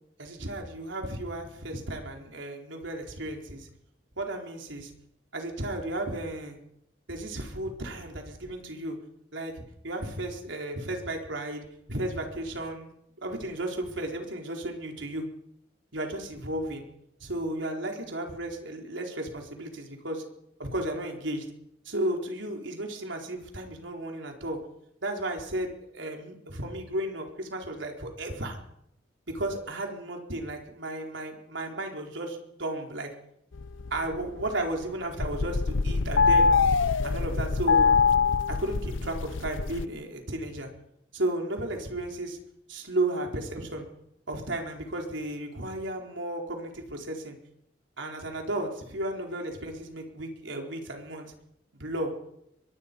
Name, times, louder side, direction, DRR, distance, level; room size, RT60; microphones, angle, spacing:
voice 1, 0.2-3.7 4.2-4.9 5.3-6.6 7.1-9.0 9.3-12.9 13.2-15.3 15.9-16.8 17.2-20.2 20.6-21.5 21.8-24.6 25.0-28.6 29.3-33.1 33.9-36.5 37.0-37.9 38.5-40.7 41.1-42.4 42.7-43.9 44.3-47.4 48.0-51.3 51.7-52.1, right 1 dB, 75° right, 2 dB, 4.4 m, -34 dB
sound 1, 33.5-34.8 35.1-39.8, left 5 dB, 90° left, 0.7 m, -24 dB
24.5 x 22.5 x 5.5 m, 0.78 s
head